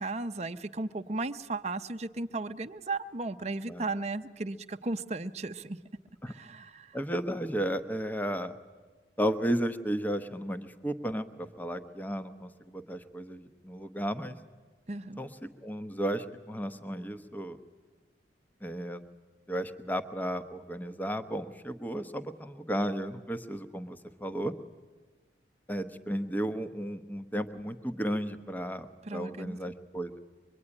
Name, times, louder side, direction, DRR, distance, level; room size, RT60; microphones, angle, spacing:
voice 1, 0.0-5.8 6.3-7.0 14.9-15.2 29.1-29.6, right 3 dB, 35° right, 8 dB, 0.7 m, -35 dB
voice 2, 6.9-8.5 9.2-14.4 15.2-17.6 18.6-19.0 19.5-24.5 25.7-30.2, equal, 10° left, 10 dB, 1.0 m, -34 dB
24.5 x 23.0 x 9.9 m, 1.4 s
head